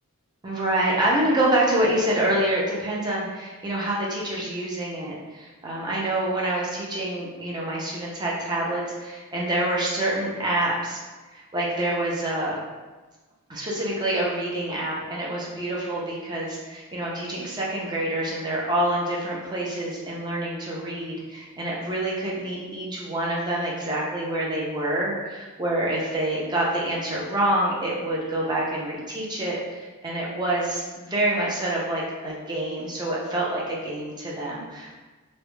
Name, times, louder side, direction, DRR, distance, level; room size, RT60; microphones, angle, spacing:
voice 1, 0.4-11.0 11.3-12.6 13.5-34.9, right 1 dB, 20° right, -5 dB, 0.5 m, -27 dB
2.3 x 2.0 x 3.0 m, 1.2 s
head